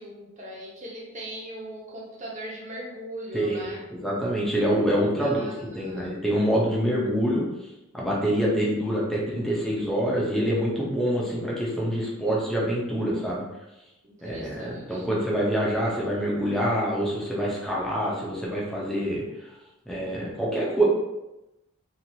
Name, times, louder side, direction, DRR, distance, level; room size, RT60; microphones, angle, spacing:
voice 1, 0.0-3.8 5.2-6.2 14.0-15.0, right 1 dB, 35° right, -4 dB, 0.8 m, -39 dB
voice 2, 3.3-7.4 7.9-13.4 14.2-19.2 19.9-20.8, equal, ahead, -6 dB, 0.5 m, -26 dB
2.9 x 2.4 x 2.7 m, 0.95 s
head